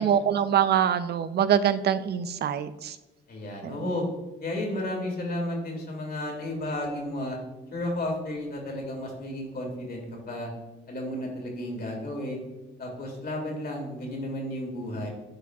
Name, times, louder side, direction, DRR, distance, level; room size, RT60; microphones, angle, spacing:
voice 1, 0.0-3.0 3.6-3.8, right 9 dB, 55° right, 13 dB, 0.5 m, -24 dB
voice 2, 3.3-4.0 4.4-7.4 7.7-10.5 10.9-12.4 12.8-15.1, left 1 dB, 50° left, 0 dB, 2.3 m, -33 dB
11.0 x 4.7 x 2.4 m, 1.1 s
cardioid pair, 90°, 20 cm